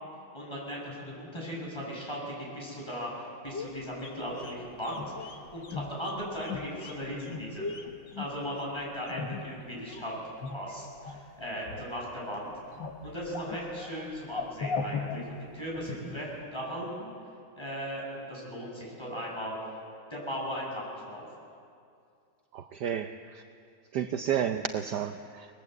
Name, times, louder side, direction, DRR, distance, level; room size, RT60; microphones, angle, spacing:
voice 1, 0.3-7.7 8.2-10.1 10.5-12.5 13.0-17.1 17.6-19.6 20.1-21.2, equal, 10° left, -4 dB, 7.6 m, -37 dB
sound 1, 3.5-10.0 10.4-11.3 11.6-12.3 12.5-15.9 16.2-16.3, left 4 dB, 65° left, 2.3 m, -39 dB
voice 2, 22.5-23.4 23.9-25.5, right 9 dB, 65° right, 7 dB, 1.2 m, -31 dB
30.0 x 20.5 x 8.0 m, 2.4 s
omnidirectional pair, 2.1 m